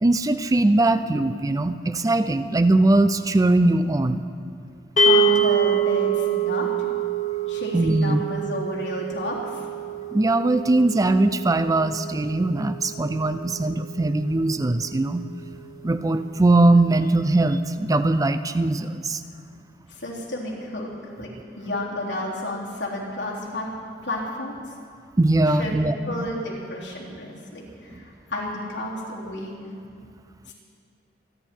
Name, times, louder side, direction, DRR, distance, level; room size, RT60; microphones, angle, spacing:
voice 1, 0.0-4.3 7.7-8.2 10.1-15.2 15.8-19.2 25.2-26.2, right 2 dB, 20° right, 11 dB, 0.4 m, -21 dB
voice 2, 5.0-6.7 7.5-9.6 19.9-20.9 21.2-21.3 21.6-23.7 24.0-24.6 25.5-25.7 26.1-29.5, left 1 dB, 70° left, -4 dB, 3.6 m, -31 dB
sound 1, 5.0-15.3, right 4 dB, 40° left, 1.4 m, -26 dB
27.0 x 11.0 x 4.6 m, 2.4 s
head